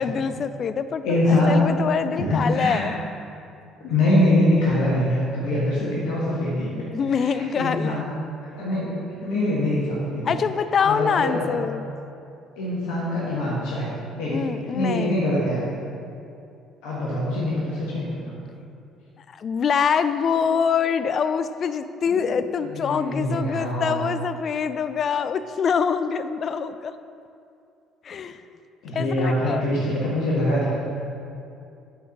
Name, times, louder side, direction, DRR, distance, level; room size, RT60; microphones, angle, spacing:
voice 1, 0.0-3.0 6.9-8.0 10.2-11.9 14.3-15.2 19.3-26.9 28.0-28.4 28.9-29.6, left 6 dB, 45° left, 12 dB, 0.4 m, -25 dB
voice 2, 1.0-1.6 2.2-2.9 3.8-6.9 7.1-8.1 8.5-8.9 9.2-10.3 10.8-11.5 12.6-13.9 14.2-15.7 16.8-18.3 22.1-22.2 22.6-24.0 28.8-30.7, left 1 dB, 70° left, -6 dB, 1.5 m, -24 dB
8.1 x 4.6 x 5.9 m, 2.6 s
hypercardioid pair, 55°, 0 cm